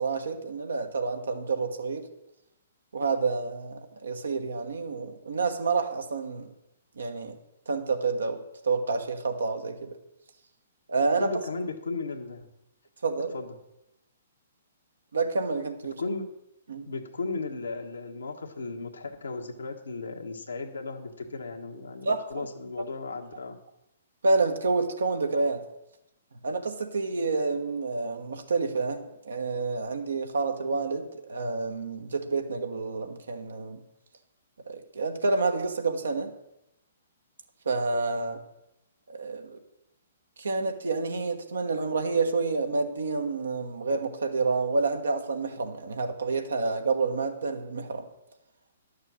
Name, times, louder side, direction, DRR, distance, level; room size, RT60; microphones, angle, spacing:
voice 1, 0.0-2.0 2.9-6.5 7.0-7.4 7.7-9.9 10.9-11.3 13.0-13.3 15.1-16.0 16.7-16.9 22.0-22.5 24.2-25.6 26.4-33.8 34.7-36.3 37.6-38.4 39.1-39.6 40.4-48.0, right 4 dB, 75° right, 5 dB, 1.3 m, -28 dB
voice 2, 11.2-12.5 13.3-13.5 16.0-16.2 16.9-23.6, left 3 dB, 80° left, 2 dB, 1.4 m, -35 dB
11.0 x 6.6 x 6.3 m, 0.91 s
figure-of-eight pair, 125°, 0 cm